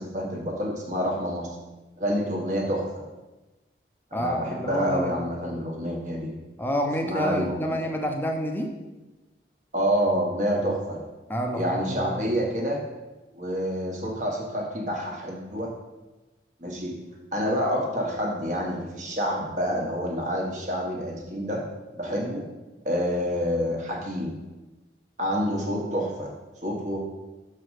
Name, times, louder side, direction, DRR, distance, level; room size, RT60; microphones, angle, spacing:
voice 1, 0.0-1.5 2.0-2.8 4.1-6.3 7.0-7.8 9.7-11.0 11.5-12.8 13.3-15.7 16.6-17.0 17.3-21.6 21.9-22.4 22.8-24.3 25.2-26.3 26.6-27.0, equal, 40° right, 0 dB, 1.4 m, -28 dB
voice 2, 4.1-5.2 6.6-8.7 11.3-12.2, equal, 10° left, 3 dB, 0.7 m, -29 dB
6.2 x 4.7 x 6.4 m, 1.1 s
head